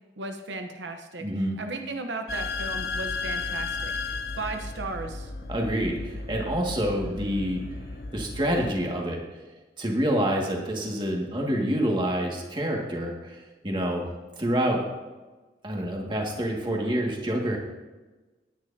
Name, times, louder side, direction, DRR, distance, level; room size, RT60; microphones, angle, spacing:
voice 1, 0.2-5.3, right 3 dB, 85° right, 5 dB, 1.0 m, -36 dB
voice 2, 1.2-1.6 5.5-7.6 8.1-9.2 9.8-14.1 14.4-14.8 15.6-17.6, equal, 25° right, 0 dB, 2.1 m, -27 dB
sound 1, 2.3-8.7, left 3 dB, 60° left, 0.9 m, -34 dB
18.5 x 9.7 x 2.8 m, 1.2 s
head